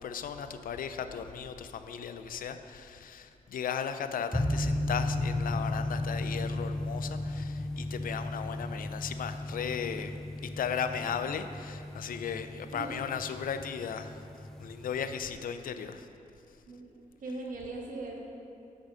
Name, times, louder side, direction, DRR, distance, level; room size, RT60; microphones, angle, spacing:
voice 1, 0.0-10.2 10.4-14.2 14.6-16.1, left 7 dB, 75° left, 9 dB, 0.4 m, -36 dB
sound 1, 4.3-15.1, left 1 dB, 5° left, 0.4 m, -35 dB
voice 2, 16.7-18.2, right 2 dB, 70° right, -1 dB, 1.3 m, -40 dB
6.6 x 4.9 x 6.2 m, 2.6 s
cardioid pair, 75°, 15 cm